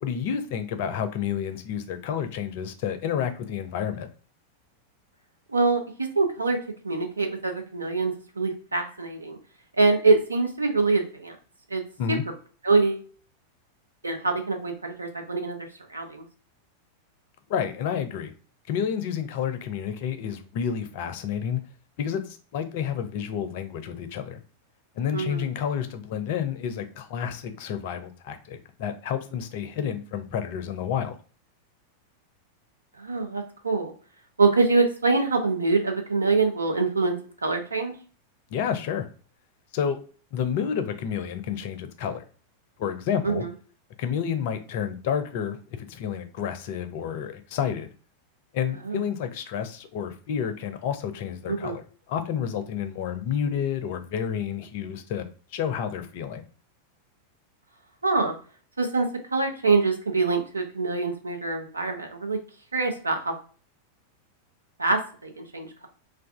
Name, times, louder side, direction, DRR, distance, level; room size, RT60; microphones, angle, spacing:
voice 1, 0.0-4.1 12.0-12.2 17.5-18.3 18.7-21.6 22.0-24.4 25.0-31.2 38.5-39.1 39.7-40.0 40.3-42.2 42.8-43.4 44.0-47.9 48.5-56.4, left 8 dB, 50° left, 9 dB, 0.4 m, -30 dB
voice 2, 5.5-6.6 6.8-9.4 9.8-11.3 11.7-11.8 12.6-13.1 14.0-15.6 15.9-16.2 25.1-25.4 33.0-33.9 34.4-37.1 37.4-37.9 43.2-43.5 48.9-49.0 51.5-51.8 58.0-58.3 58.8-62.4 62.7-63.3 64.8-65.9, right 3 dB, 80° right, 4 dB, 0.5 m, -24 dB
2.4 x 2.3 x 3.4 m, 0.40 s
figure-of-eight pair, 90°, 0 cm